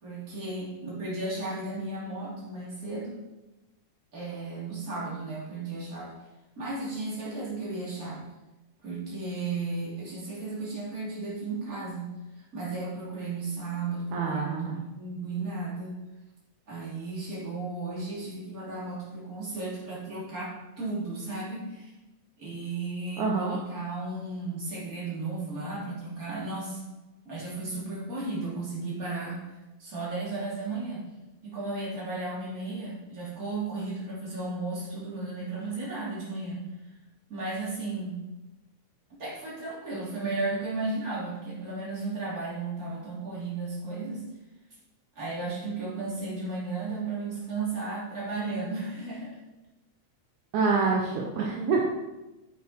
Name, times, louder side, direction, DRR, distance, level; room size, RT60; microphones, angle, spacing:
voice 1, 0.0-3.2 4.1-6.1 6.6-8.2 8.8-12.1 12.5-14.7 14.9-16.0 16.7-21.9 22.4-26.8 27.3-29.4 29.8-31.1 31.4-36.6 37.3-38.2 39.1-44.3 45.2-49.4, right 3 dB, 25° right, -7 dB, 3.7 m, -34 dB
voice 2, 14.1-14.8 23.2-23.6 50.5-51.9, right 4 dB, 75° right, -1 dB, 2.3 m, -26 dB
9.6 x 8.0 x 4.5 m, 1.0 s
omnidirectional pair, 3.6 m